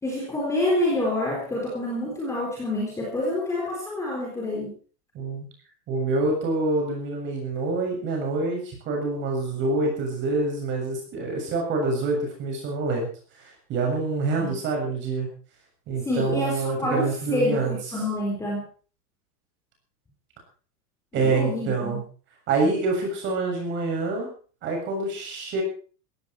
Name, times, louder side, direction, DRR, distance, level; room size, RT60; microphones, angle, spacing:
voice 1, 0.0-4.7 14.4-14.5 16.0-18.7 21.2-22.0, left 1 dB, 5° left, -2 dB, 3.8 m, -27 dB
voice 2, 5.1-5.5 5.9-13.1 13.4-15.3 15.9-17.8 21.1-22.0 22.5-24.3 24.6-25.6, right 3 dB, 25° right, 1 dB, 7.3 m, -26 dB
17.5 x 16.0 x 4.6 m, 0.39 s
supercardioid pair, 175°, 49 cm